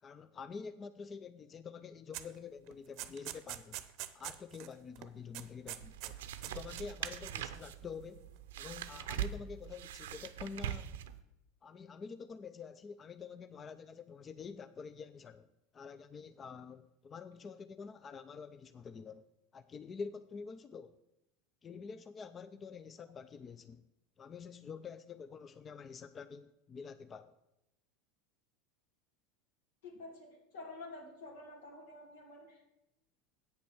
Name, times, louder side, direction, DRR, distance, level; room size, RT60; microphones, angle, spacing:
voice 1, 0.0-3.8 4.1-6.2 6.4-8.3 8.6-11.0 11.6-15.5 15.7-19.2 19.5-21.0 21.6-23.8 24.2-27.3, left 5 dB, 25° left, 0.4 m, -47 dB
sound 1, 2.1-2.4 2.7-4.7 5.0-5.1 5.3-6.1 6.4-7.5, right 15 dB, 55° right, 0.7 m, -44 dB
sound 2, 5.7-11.2, right 10 dB, 90° right, 0.6 m, -42 dB
voice 2, 29.8-32.7, left 2 dB, 85° left, 2.8 m, -49 dB
8.4 x 7.1 x 6.4 m
supercardioid pair, 130°, 0 cm